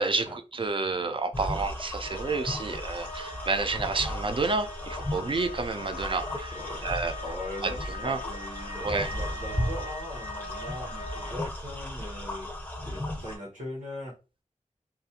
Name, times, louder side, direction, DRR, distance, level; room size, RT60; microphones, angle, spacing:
voice 1, 0.0-6.5 6.8-7.1 7.6-7.7 8.0-8.2 8.8-9.1, right 3 dB, 45° right, 0.4 m, -29 dB
sound 1, 1.3-13.4, left 1 dB, 15° left, 0.6 m, -36 dB
sound 2, 2.0-11.3, left 2 dB, 55° left, 0.4 m, -42 dB
voice 2, 6.5-12.5 12.8-14.1, left 1 dB, 90° right, 1.0 m, -40 dB
2.4 x 2.1 x 2.8 m
wide cardioid pair, 75°, 13 cm